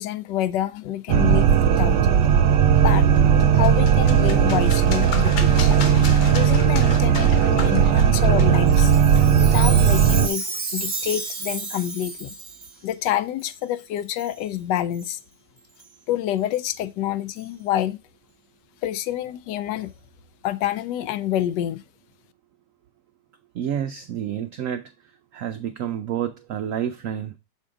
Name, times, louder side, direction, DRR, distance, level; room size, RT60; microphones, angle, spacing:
voice 1, 0.0-2.2 2.8-3.1 3.5-5.8 6.3-8.9 9.4-10.4 10.7-12.4 12.8-15.2 16.1-18.0 18.8-19.9 20.4-21.8, left 12 dB, 75° left, 1.2 m, -27 dB
sound 1, 1.1-10.3, right 8 dB, 75° right, 1.2 m, -17 dB
sound 2, 3.1-10.7, left 5 dB, 60° left, 1.3 m, -36 dB
Chime, 8.7-12.7 13.4-13.5 14.2-14.4 14.9-15.1 15.8-15.9 16.5-16.6 17.4-17.5, right 4 dB, 25° right, 0.9 m, -32 dB
voice 2, 23.5-24.9 25.3-27.4, right 9 dB, 90° right, 0.7 m, -29 dB
6.6 x 3.7 x 4.8 m
omnidirectional pair, 2.0 m